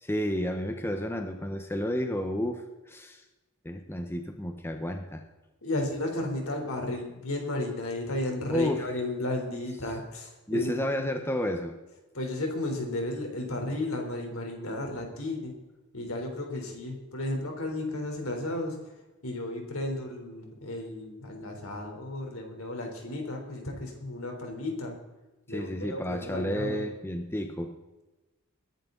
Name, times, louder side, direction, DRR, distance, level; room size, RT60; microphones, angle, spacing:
voice 1, 0.0-3.2 3.6-5.2 8.5-8.9 10.5-11.8 25.5-27.7, equal, 10° left, 5 dB, 1.0 m, -31 dB
voice 2, 5.6-10.7 12.1-15.5 15.9-18.8 19.2-24.9 25.5-26.8, left 2 dB, 70° left, 3 dB, 3.7 m, -33 dB
21.5 x 11.0 x 4.0 m, 1.1 s
head